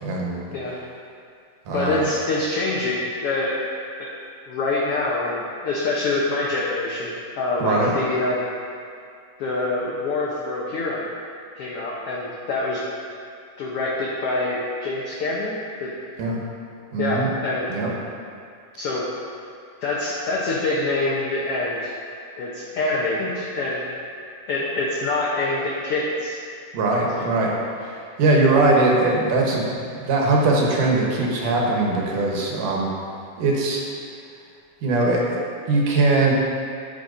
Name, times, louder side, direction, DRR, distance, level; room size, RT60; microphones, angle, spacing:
voice 1, 0.0-0.4 1.7-2.0 7.6-7.9 16.2-16.4 16.9-17.3 17.7-17.9 26.7-27.5 27.8-27.9 28.2-29.7 30.0-32.9 33.4-33.9 34.8-35.4 35.7-36.3, right 2 dB, 80° right, -2 dB, 2.6 m, -20 dB
voice 2, 1.7-3.6 4.0-4.1 4.5-8.4 9.4-11.1 11.5-12.8 13.6-15.9 17.0-17.7 18.8-19.0 19.8-21.9 22.4-23.9 24.5-26.4 27.1-27.3, left 2 dB, 80° left, -5 dB, 1.3 m, -25 dB
13.0 x 5.8 x 2.6 m, 2.3 s
omnidirectional pair, 3.7 m